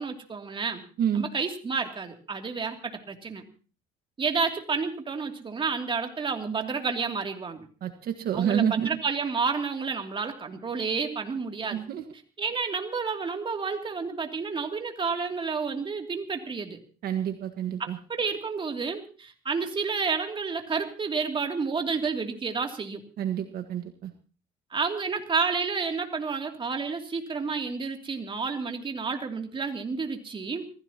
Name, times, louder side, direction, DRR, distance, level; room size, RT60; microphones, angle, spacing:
voice 1, 0.0-0.8 1.1-3.4 4.2-7.7 8.3-11.8 12.4-16.8 17.8-23.0 24.7-30.7, right 5 dB, 30° right, 4 dB, 2.8 m, -30 dB
voice 2, 7.8-8.9 11.7-12.0 17.0-18.0 23.2-24.1, right 9 dB, 65° right, 6 dB, 1.5 m, -28 dB
26.0 x 16.0 x 2.9 m, 0.37 s
cardioid pair, 110°, 17 cm